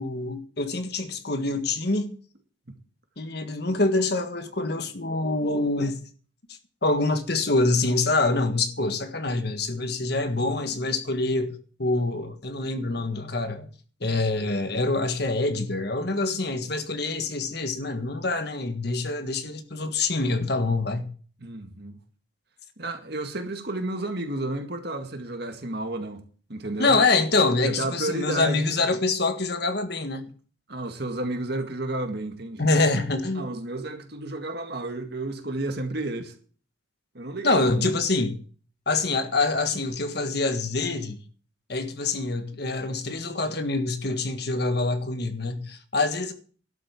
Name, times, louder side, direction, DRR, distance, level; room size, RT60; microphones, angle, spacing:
voice 1, 0.0-2.1 3.2-6.0 6.8-13.7 14.0-21.1 26.8-30.2 32.6-33.5 37.4-38.4 38.9-41.2 41.7-46.3, left 3 dB, 55° left, 1.6 m, -25 dB
voice 2, 21.4-22.0 22.8-26.2 26.5-27.0 27.6-28.8 30.7-32.7 33.4-36.3 37.1-38.0, right 2 dB, 55° right, 2.0 m, -32 dB
12.0 x 7.7 x 7.2 m
head